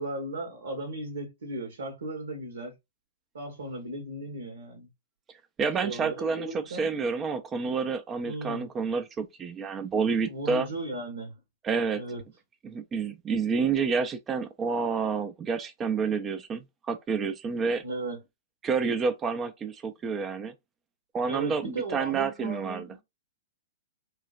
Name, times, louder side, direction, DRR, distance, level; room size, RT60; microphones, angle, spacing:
voice 1, 0.0-2.7 3.3-4.9 5.8-6.9 8.2-8.7 10.2-11.4 12.0-12.2 17.8-18.2 21.3-23.0, right 2 dB, 75° right, 0.8 m, -36 dB
voice 2, 5.6-10.7 11.6-12.0 12.6-17.8 18.6-20.5 21.1-23.0, right 5 dB, 25° right, 0.4 m, -29 dB
3.1 x 2.0 x 2.3 m
hypercardioid pair, 110°, 0 cm